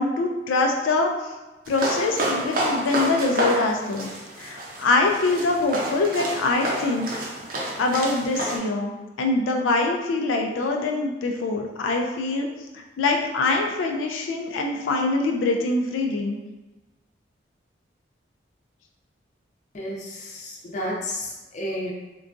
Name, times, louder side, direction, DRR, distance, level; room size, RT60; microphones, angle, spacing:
voice 1, 0.0-1.3 1.7-4.1 4.4-7.1 7.8-12.5 12.7-16.4, left 3 dB, 90° left, 2 dB, 0.3 m, -24 dB
sound 1, 1.7-8.6, right 1 dB, 45° right, 0.5 m, -29 dB
voice 2, 19.7-21.9, equal, 40° left, -3 dB, 0.6 m, -32 dB
3.7 x 2.3 x 2.5 m, 1.1 s
head